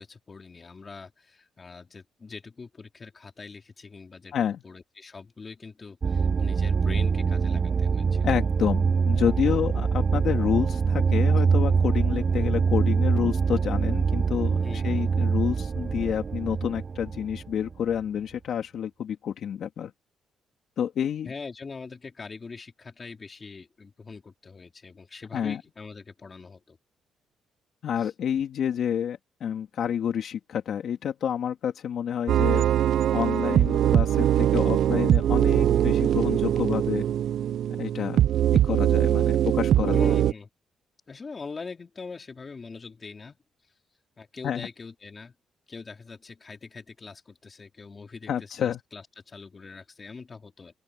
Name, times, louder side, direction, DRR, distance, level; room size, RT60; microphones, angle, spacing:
voice 1, 0.0-4.3 4.6-8.4 14.6-15.1 21.2-26.8 28.0-28.1 39.9-40.5 41.1-43.4 44.2-45.3 45.7-50.8, left 4 dB, 35° left, 4.3 m, -42 dB
sound 1, 6.0-18.0, right 5 dB, 40° right, 0.4 m, -24 dB
voice 2, 8.2-19.9 20.8-21.3 25.3-25.6 27.8-32.6 33.1-37.0 37.8-38.2 38.5-40.0 44.4-44.7 48.3-48.8, left 9 dB, 65° left, 2.3 m, -29 dB
sound 2, 32.3-40.3, right 11 dB, 70° right, 0.7 m, -22 dB
open air
cardioid pair, 90°, 0 cm